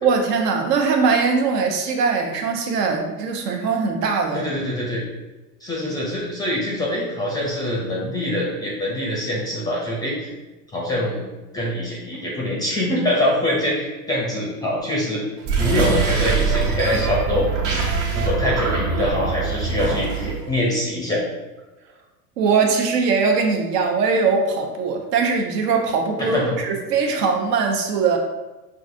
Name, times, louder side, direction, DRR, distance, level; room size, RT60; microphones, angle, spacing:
voice 1, 0.0-4.4 22.4-28.2, right 5 dB, 70° right, 2 dB, 0.9 m, -21 dB
voice 2, 4.3-5.0 5.6-10.3 10.7-11.3 11.5-15.2 15.6-17.9 18.1-21.2 26.2-26.5, left 1 dB, 10° left, -4 dB, 0.5 m, -24 dB
sound 1, 15.4-20.5, right 4 dB, 50° right, 1.3 m, -23 dB
5.9 x 2.5 x 2.6 m, 1.1 s
supercardioid pair, 130°, 48 cm